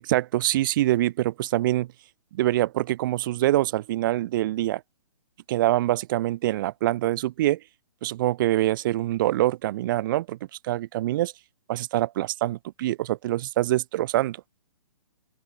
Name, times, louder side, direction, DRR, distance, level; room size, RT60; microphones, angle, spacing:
voice 1, 0.1-1.9 2.3-4.8 5.5-7.6 8.0-10.4 10.6-11.3 11.7-14.4, right 15 dB, 40° right, 0.4 m, -24 dB
open air
hypercardioid pair, 140°, 17 cm